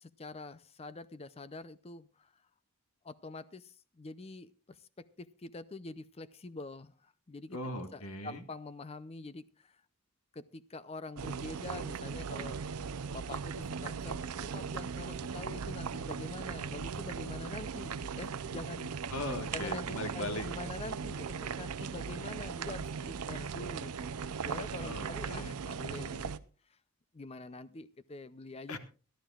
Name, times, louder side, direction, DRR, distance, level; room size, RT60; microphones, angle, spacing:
voice 1, 0.0-2.4 3.0-7.6 7.9-9.8 10.3-12.6 13.1-19.1 19.5-26.4 26.7-26.8 27.1-28.8, left 3 dB, 25° left, 15 dB, 0.5 m, -46 dB
voice 2, 7.5-8.4 19.1-20.5 24.8-25.6 28.7-28.8, left 1 dB, 80° left, 7 dB, 1.7 m, -39 dB
sound 1, 11.2-26.4, right 6 dB, 80° right, 0.6 m, -38 dB
23.0 x 12.5 x 2.4 m, 0.36 s
head